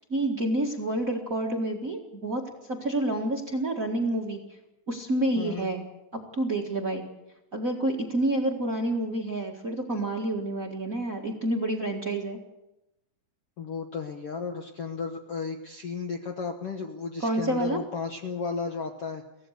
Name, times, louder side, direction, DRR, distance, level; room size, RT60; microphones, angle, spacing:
voice 1, 0.1-2.4 2.7-4.4 4.9-5.8 6.3-7.0 7.5-12.4 17.2-17.8, right 1 dB, 35° right, 2 dB, 1.4 m, -28 dB
voice 2, 5.3-5.7 13.6-19.2, left 5 dB, 60° left, 4 dB, 1.5 m, -34 dB
24.0 x 16.5 x 6.6 m, 0.92 s
omnidirectional pair, 4.2 m